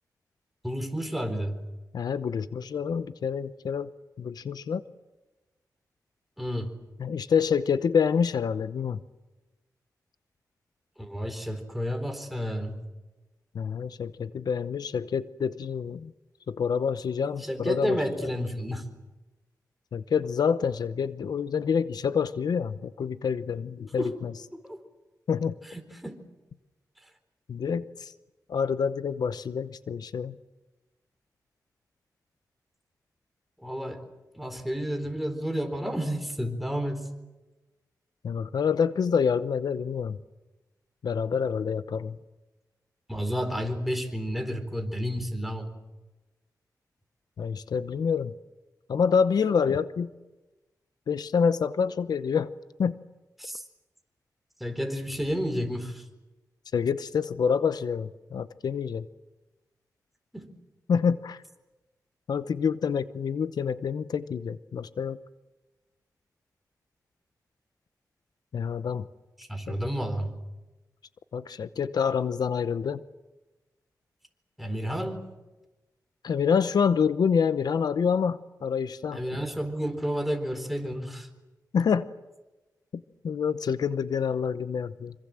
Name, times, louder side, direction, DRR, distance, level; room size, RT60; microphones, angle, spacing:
voice 1, 0.6-1.6 6.4-6.7 11.0-12.8 17.4-18.9 24.0-24.2 24.5-24.8 25.7-26.2 33.6-34.0 34.3-37.1 43.1-45.7 53.4-53.6 54.6-56.0 60.3-60.5 69.4-70.3 74.6-75.2 79.1-81.3, equal, ahead, 6 dB, 4.1 m, -31 dB
voice 2, 1.9-3.9 4.2-4.8 7.0-9.0 13.5-16.1 16.5-18.0 18.2-18.3 19.9-24.3 25.3-25.6 27.5-28.1 28.5-30.4 38.2-40.2 41.0-42.2 47.4-48.3 48.9-50.1 51.1-52.5 52.8-53.0 56.7-59.1 60.9-61.4 62.3-65.2 68.5-69.1 69.7-69.8 71.3-73.0 76.2-79.2 81.7-82.1 83.2-85.1, left 6 dB, 85° left, 14 dB, 0.8 m, -27 dB
26.5 x 25.0 x 7.6 m, 1.1 s
wide cardioid pair, 85°, 7 cm